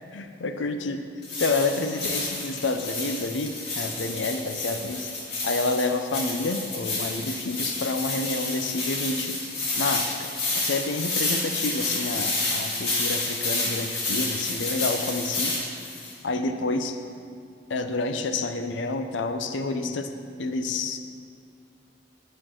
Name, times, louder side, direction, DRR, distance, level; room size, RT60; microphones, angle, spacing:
voice 1, 0.1-1.1 1.4-5.1 5.4-9.3 9.8-10.3 10.7-15.5 16.2-17.0 17.7-20.1 20.4-21.0, left 3 dB, 80° left, 7 dB, 0.6 m, -29 dB
sound 1, 1.2-16.1, left 2 dB, 60° left, 2.1 m, -30 dB
11.0 x 4.5 x 6.2 m, 2.3 s
head